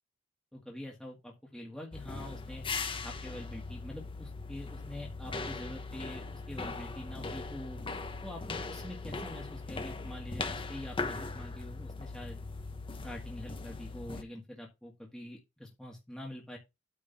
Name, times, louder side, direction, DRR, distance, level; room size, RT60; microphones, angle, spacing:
voice 1, 0.5-2.6 3.0-7.8 8.2-12.4 13.0-16.6, left 1 dB, 5° left, -2 dB, 1.7 m, -45 dB
sound 1, 1.9-14.2, left 3 dB, 25° left, 0.9 m, -39 dB
9.0 x 3.7 x 5.6 m, 0.23 s
head